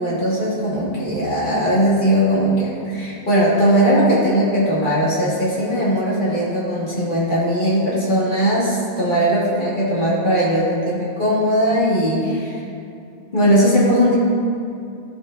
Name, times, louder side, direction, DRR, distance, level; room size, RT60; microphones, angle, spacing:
voice 1, 0.0-12.6 13.3-14.1, equal, 50° left, -8 dB, 1.9 m, -19 dB
12.5 x 4.7 x 2.5 m, 2.6 s
omnidirectional pair, 1.1 m